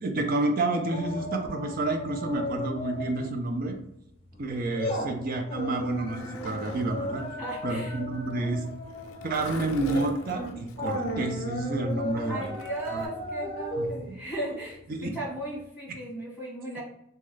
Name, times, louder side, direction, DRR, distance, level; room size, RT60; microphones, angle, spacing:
voice 1, 0.0-3.8 4.4-7.2 7.6-8.6 9.2-12.4 12.9-13.1 13.8-14.2 14.9-15.1, right 2 dB, 40° right, 3 dB, 0.4 m, -29 dB
sound 1, 0.9-3.3 3.6-3.8 4.3-15.2 15.6-15.7, left 1 dB, 30° left, 0.6 m, -35 dB
Skateboard, 5.6-13.1, left 3 dB, 75° left, 0.5 m, -42 dB
voice 2, 7.4-8.0 12.2-16.8, right 1 dB, 10° right, -10 dB, 1.4 m, -36 dB
2.9 x 2.3 x 3.2 m, 0.79 s
head